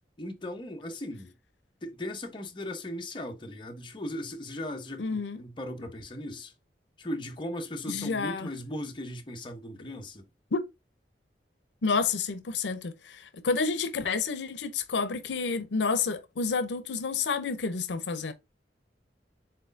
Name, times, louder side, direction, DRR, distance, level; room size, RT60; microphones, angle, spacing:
voice 1, 0.2-1.3 1.8-6.5 7.0-10.3, left 1 dB, 30° left, 0.8 m, -38 dB
voice 2, 5.0-5.4 7.9-8.5 10.5-10.6 11.8-18.3, left 4 dB, 85° left, 0.5 m, -29 dB
4.4 x 3.8 x 2.5 m
head